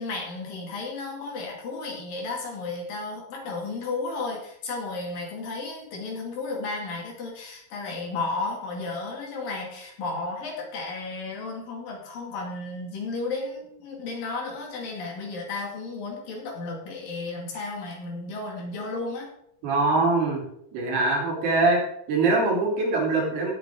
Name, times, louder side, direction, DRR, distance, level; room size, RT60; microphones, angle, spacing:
voice 1, 0.0-19.3, left 3 dB, 60° left, -1 dB, 3.9 m, -33 dB
voice 2, 19.6-20.4 20.7-21.8 22.1-23.5, right 3 dB, 75° right, -3 dB, 5.1 m, -23 dB
17.5 x 8.9 x 3.6 m, 0.75 s
omnidirectional pair, 4.7 m